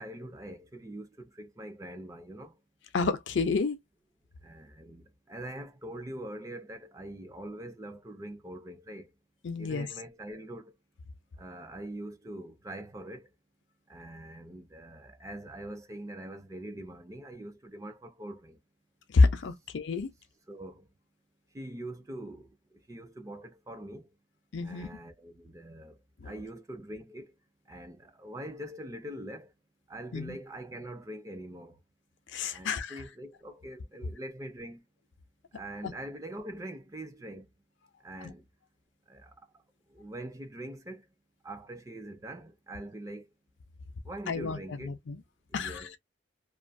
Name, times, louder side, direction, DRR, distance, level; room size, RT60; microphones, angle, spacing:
voice 1, 0.0-2.6 4.4-9.1 9.6-10.8 11.4-13.3 13.9-18.6 20.5-20.9 21.5-24.1 24.6-26.0 26.2-27.3 27.7-29.5 29.9-31.8 32.5-34.9 35.5-37.5 38.0-38.5 39.1-41.1 41.4-43.3 44.0-45.0 45.5-46.0, right 1 dB, 15° right, 0.4 m, -43 dB
voice 2, 2.9-3.8 9.4-9.9 19.1-20.1 24.5-24.9 26.2-26.3 30.1-30.4 32.3-33.0 44.3-44.6 44.8-45.2 45.5-45.8, left 3 dB, 70° left, 0.5 m, -28 dB
2.6 x 2.3 x 2.5 m
head